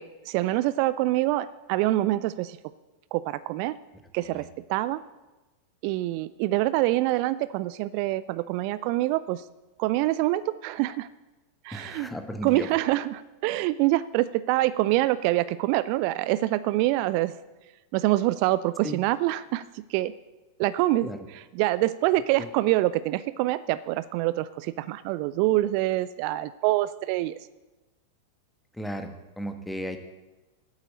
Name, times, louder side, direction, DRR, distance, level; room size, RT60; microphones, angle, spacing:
voice 1, 0.0-2.6 3.1-3.8 4.1-5.0 5.8-9.4 9.8-11.1 11.6-12.1 12.4-17.3 17.9-20.1 20.6-21.1 21.6-27.4, right 16 dB, 45° right, 17 dB, 0.3 m, -25 dB
voice 2, 11.7-12.7 18.8-19.0 21.0-21.2 22.4-22.5 28.7-30.0, equal, 5° left, 6 dB, 1.2 m, -35 dB
8.8 x 8.1 x 8.4 m, 1.1 s
figure-of-eight pair, 90°, 0 cm